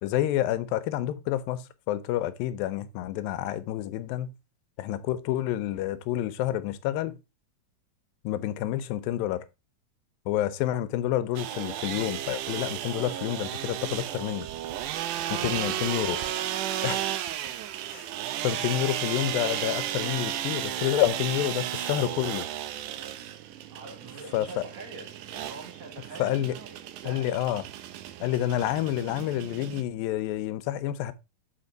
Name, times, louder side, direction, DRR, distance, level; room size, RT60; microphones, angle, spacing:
voice 1, 0.0-4.3 4.8-7.2 8.2-9.5 10.3-14.5 15.4-16.2 16.8-17.0 17.9-18.1 18.4-22.4 24.3-24.6 26.2-26.6 27.0-27.6 28.2-31.1, left 13 dB, 85° left, 2.4 m, -28 dB
sound 1, 11.4-29.8, right 12 dB, 80° right, 2.0 m, -34 dB
voice 2, 15.2-16.6 17.4-17.8 23.7-27.4, right 3 dB, 55° right, 2.7 m, -45 dB
7.1 x 4.4 x 3.8 m
omnidirectional pair, 4.0 m